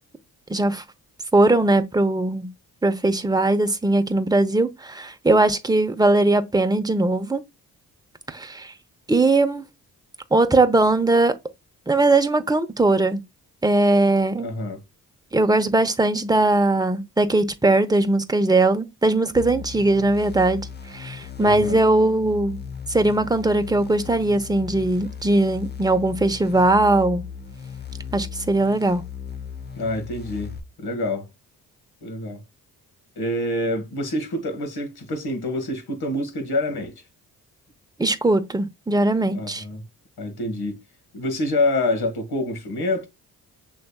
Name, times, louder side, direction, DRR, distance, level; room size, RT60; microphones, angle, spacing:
voice 1, 0.5-0.8 1.3-2.5 2.8-7.4 8.3-8.7 9.1-9.6 10.3-11.3 11.9-13.2 13.6-14.5 15.3-22.6 22.9-27.2 28.1-29.0 38.0-39.6, right 2 dB, 10° right, 0.9 m, -20 dB
voice 2, 14.4-14.8 21.4-21.8 29.8-30.5 30.8-31.3 32.0-32.4 33.2-36.9 39.3-39.8 40.2-40.8 41.1-43.1, left 1 dB, 60° left, 1.8 m, -26 dB
sound 1, 19.4-30.6, left 7 dB, 25° left, 0.8 m, -37 dB
6.5 x 3.3 x 2.4 m
hypercardioid pair, 45°, 42 cm